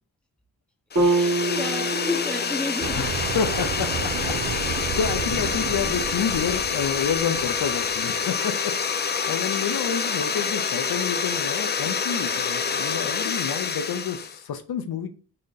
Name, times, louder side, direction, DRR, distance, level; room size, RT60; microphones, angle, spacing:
sound 1, 0.9-14.4, left 6 dB, 30° left, 0.4 m, -27 dB
voice 1, 1.0-3.1, left 3 dB, 5° left, 0.8 m, -31 dB
sound 2, 1.0-5.0, right 2 dB, 35° right, 2.0 m, -28 dB
sound 3, 2.8-8.0, right 6 dB, 70° right, 0.6 m, -32 dB
voice 2, 2.9-15.1, left 7 dB, 70° left, 0.6 m, -29 dB
3.9 x 2.1 x 3.9 m
cardioid pair, 50°, 38 cm